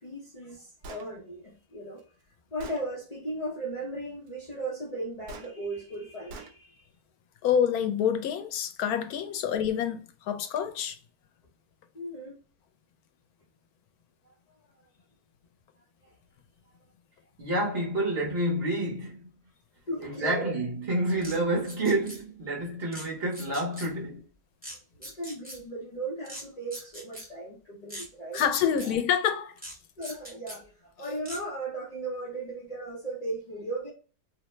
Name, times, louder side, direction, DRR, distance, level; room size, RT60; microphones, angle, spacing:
voice 1, 0.0-2.0 2.5-6.9 11.9-12.4 14.2-14.3 15.8-16.1 16.7-16.8 19.9-20.5 24.9-28.4 28.8-29.0 30.0-33.9, right 2 dB, 45° left, 0.5 m, -37 dB
Gunshot gunfire, 0.8-1.1 2.0-2.1 2.6-2.8 5.3-5.5 6.3-6.5, right 3 dB, 90° right, 1.1 m, -43 dB
voice 2, 7.4-10.0 10.3-11.0 28.3-29.5, left 8 dB, 90° left, 1.1 m, -27 dB
voice 3, 17.4-19.3 20.0-24.2, right 1 dB, 50° right, 1.1 m, -29 dB
sound 1, 21.2-21.4 21.6-22.2 22.9-23.1 23.3-23.9 24.6-24.8 25.0-25.6 26.2-26.4 26.7-27.3 27.9-28.1 28.3-28.9 29.6-29.7 30.0-30.6 31.2-31.4, equal, 5° right, 0.9 m, -41 dB
2.8 x 2.0 x 3.1 m
omnidirectional pair, 1.5 m